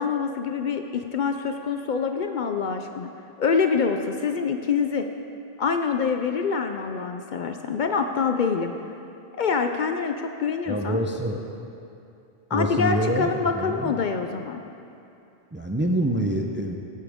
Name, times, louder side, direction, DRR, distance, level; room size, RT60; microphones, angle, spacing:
voice 1, 0.0-3.1 3.4-5.1 5.6-8.7 9.4-11.0 12.5-14.6, left 5 dB, 60° left, 6 dB, 0.6 m, -25 dB
voice 2, 10.7-11.4 12.5-13.9 15.5-16.8, right 1 dB, 15° right, 2 dB, 0.4 m, -26 dB
14.0 x 8.6 x 3.6 m, 2.6 s
omnidirectional pair, 1.0 m